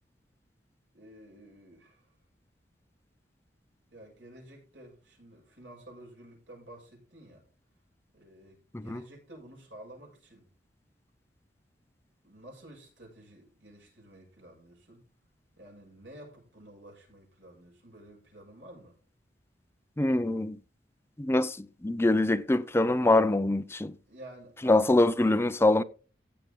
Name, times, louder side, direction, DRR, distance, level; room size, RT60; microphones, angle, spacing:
voice 1, 0.9-2.1 3.9-7.4 8.1-10.5 12.2-15.1 15.6-19.0 24.0-25.4, right 1 dB, 90° right, 7.0 m, -51 dB
voice 2, 20.0-20.6 21.2-21.6 21.8-23.9 24.6-25.8, left 2 dB, 15° left, 0.5 m, -24 dB
15.5 x 7.4 x 3.8 m
head